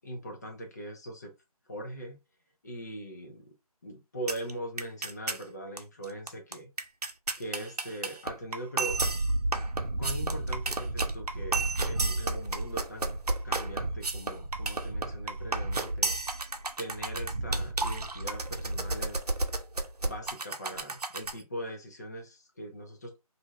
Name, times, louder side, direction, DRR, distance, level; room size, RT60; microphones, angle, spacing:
voice 1, 0.0-1.3 1.7-2.2 2.6-3.4 3.8-6.7 7.4-9.0 10.0-16.2 16.8-19.2 20.0-23.2, right 1 dB, 25° left, 0.7 m, -41 dB
sound 1, 4.3-4.5 4.8-5.4 5.8-5.9 6.0-21.4, right 3 dB, 80° right, 0.6 m, -33 dB
sound 2, 8.9-19.1, right 1 dB, 40° right, 0.4 m, -34 dB
2.6 x 2.5 x 3.1 m
figure-of-eight pair, 160°, 20 cm